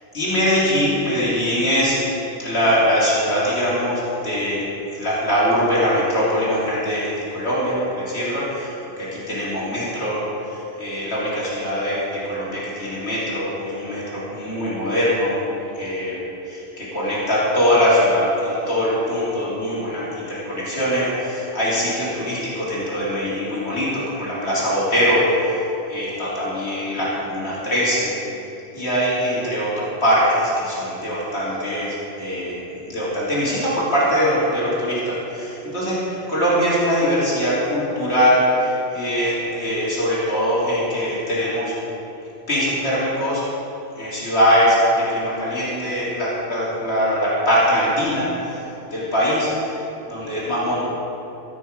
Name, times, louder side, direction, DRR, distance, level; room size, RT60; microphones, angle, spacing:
voice 1, 0.1-2.0 2.4-4.7 4.9-15.4 15.7-28.2 28.7-41.8 42.5-43.4 44.0-48.6 48.9-49.8 50.1-50.8, equal, 80° left, -8 dB, 2.8 m, -22 dB
15.5 x 6.2 x 4.8 m, 3.0 s
omnidirectional pair, 1.1 m